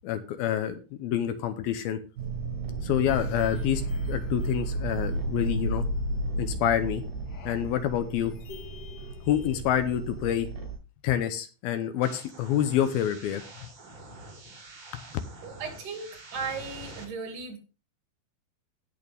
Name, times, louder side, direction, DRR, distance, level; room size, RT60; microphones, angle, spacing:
voice 1, 0.0-2.0 2.8-5.9 6.4-7.0 7.5-8.3 9.3-10.5 11.0-13.4, left 10 dB, 75° left, 9 dB, 2.5 m, -27 dB
sound 1, 2.2-10.8, right 4 dB, 75° right, 5.4 m, -34 dB
sound 2, 3.1-9.6, left 5 dB, 55° left, 3.7 m, -37 dB
sound 3, 12.0-17.0, right 2 dB, 35° right, 2.4 m, -46 dB
voice 2, 15.4-17.6, right 5 dB, 55° right, 4 dB, 3.5 m, -36 dB
17.5 x 6.5 x 3.5 m, 0.34 s
omnidirectional pair, 4.7 m